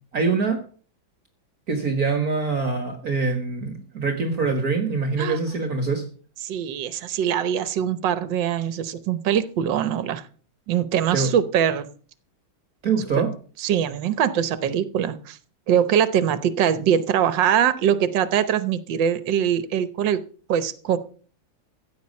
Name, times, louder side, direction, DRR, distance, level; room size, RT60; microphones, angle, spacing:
voice 1, 0.1-0.6 1.7-6.0 11.1-11.3 12.8-13.3, right 4 dB, 50° right, 5 dB, 1.9 m, -24 dB
voice 2, 5.2-5.6 6.4-10.2 10.7-11.9 13.6-15.4 15.7-20.2 20.5-21.0, right 9 dB, 70° right, 12 dB, 1.6 m, -22 dB
15.5 x 9.0 x 5.3 m, 0.43 s
omnidirectional pair, 2.1 m